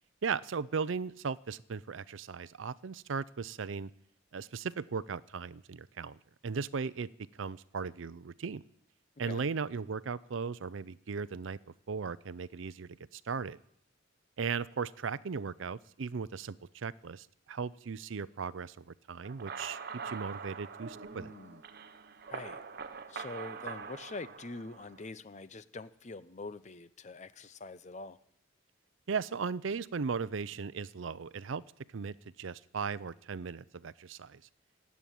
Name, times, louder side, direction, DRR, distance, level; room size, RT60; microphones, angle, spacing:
voice 1, 0.2-3.9 4.3-7.1 7.4-8.6 9.2-11.6 11.9-13.6 14.4-19.8 20.0-21.3 29.1-31.6 31.9-34.4, right 5 dB, 70° right, 18 dB, 0.5 m, -37 dB
sound 1, 19.2-25.0, right 5 dB, 50° right, 0.9 m, -44 dB
voice 2, 21.1-21.6 22.3-22.6 23.1-28.2, left 3 dB, 35° left, 14 dB, 0.7 m, -44 dB
17.5 x 8.4 x 9.3 m, 0.71 s
head